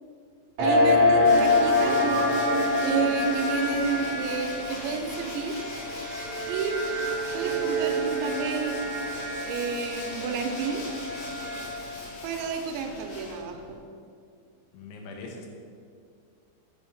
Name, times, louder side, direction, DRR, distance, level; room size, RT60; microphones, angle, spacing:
sound 1, 0.6-12.0, left 2 dB, 60° right, 1.2 m, -26 dB
voice 1, 0.6-2.0 2.8-5.6 6.5-6.8 7.3-8.8 9.4-10.9 12.2-13.8, right 5 dB, 85° right, 4 dB, 3.0 m, -30 dB
Tools, 1.2-13.7, left 2 dB, 50° left, 3.3 m, -41 dB
voice 2, 14.7-15.5, left 3 dB, 85° left, 1 dB, 3.6 m, -41 dB
7.0 x 5.4 x 7.2 m, 2.2 s
omnidirectional pair, 5.3 m